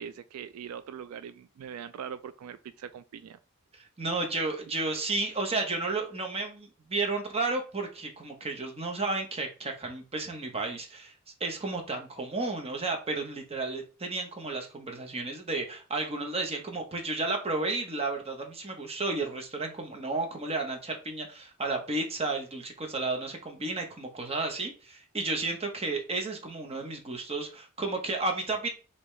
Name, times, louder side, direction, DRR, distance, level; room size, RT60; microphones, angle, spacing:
voice 1, 0.0-3.4, right 8 dB, 85° right, 0.3 m, -41 dB
voice 2, 4.0-11.1 11.4-28.7, right 3 dB, 30° right, 0.9 m, -32 dB
5.2 x 2.8 x 3.2 m
head